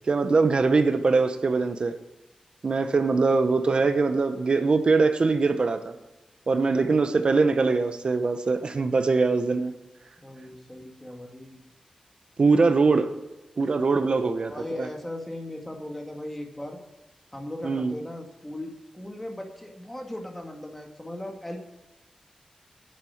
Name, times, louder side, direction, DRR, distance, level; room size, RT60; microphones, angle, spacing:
voice 1, 0.1-1.9 2.6-5.9 6.5-9.7 12.4-13.1 13.6-14.5 14.8-14.9 17.6-18.0, right 4 dB, 50° right, 9 dB, 0.9 m, -22 dB
voice 2, 2.8-3.2 6.9-7.4 10.2-11.6 14.5-16.8 17.3-21.6, left 1 dB, 10° left, 2 dB, 2.1 m, -38 dB
10.0 x 7.6 x 8.6 m, 1.0 s
wide cardioid pair, 90°, 2 cm